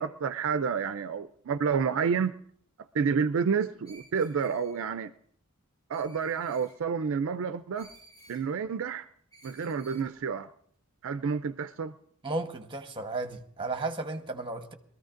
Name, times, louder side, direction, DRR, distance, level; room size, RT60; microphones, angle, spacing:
voice 1, 0.0-2.3 2.9-5.1 5.9-7.9 8.3-9.1 9.4-10.5 11.0-11.9, right 6 dB, 65° right, 0.4 m, -29 dB
Screech, 3.8-4.9 5.9-6.8 7.7-8.4 9.3-10.1, right 2 dB, 20° left, 6.5 m, -55 dB
voice 2, 12.2-14.7, right 2 dB, 25° right, 1.1 m, -34 dB
22.5 x 14.0 x 2.5 m
head